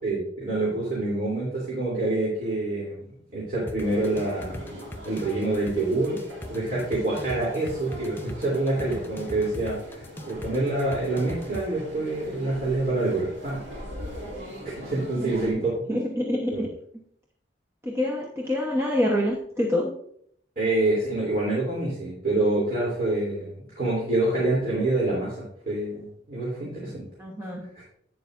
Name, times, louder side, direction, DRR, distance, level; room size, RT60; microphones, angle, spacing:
voice 1, 0.0-3.0 3.3-4.6 5.0-6.2 6.5-13.6 14.6-16.0 16.5-16.6 20.6-25.3 25.6-27.0 27.8-27.9, right 2 dB, 45° right, -7 dB, 3.1 m, -26 dB
sound 1, 3.7-11.6, left 1 dB, 10° left, 0.5 m, -39 dB
sound 2, 3.8-15.5, equal, 65° right, 3.3 m, -41 dB
voice 2, 15.2-15.6 15.9-16.7 17.8-19.9 27.2-27.7, left 1 dB, 15° right, -2 dB, 1.0 m, -26 dB
11.5 x 8.4 x 2.6 m, 0.67 s
head